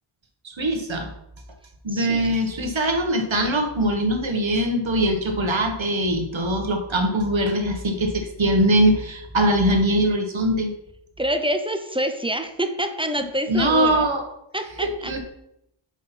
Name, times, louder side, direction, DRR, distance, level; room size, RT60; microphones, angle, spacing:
voice 1, 0.4-1.1 1.8-10.7 13.5-14.2 14.8-15.2, right 1 dB, 65° right, 4 dB, 1.3 m, -22 dB
voice 2, 1.9-2.3 11.2-14.1 14.5-15.1, equal, 10° right, 7 dB, 0.8 m, -26 dB
5.8 x 4.9 x 5.8 m, 0.80 s
wide cardioid pair, 55°, 50 cm